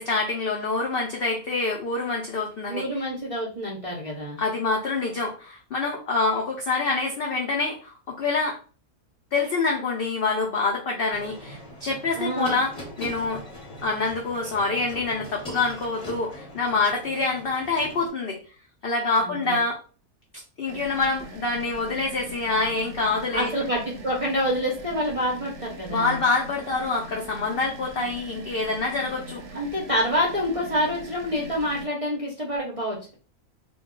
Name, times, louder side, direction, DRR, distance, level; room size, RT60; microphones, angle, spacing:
voice 1, 0.0-2.9 4.4-8.6 9.3-12.7 13.0-13.4 13.8-18.4 18.8-19.8 20.6-23.5 25.9-29.6, left 3 dB, 75° left, 0 dB, 0.5 m, -26 dB
voice 2, 2.7-4.4 12.2-12.6 19.2-19.6 23.3-26.2 29.5-33.1, equal, 40° right, -4 dB, 0.5 m, -27 dB
sound 1, 11.1-18.1, equal, 30° left, 0.8 m, -41 dB
sound 2, 20.7-31.9, right 2 dB, 60° right, 0.8 m, -42 dB
2.3 x 2.2 x 3.6 m, 0.38 s
omnidirectional pair, 1.6 m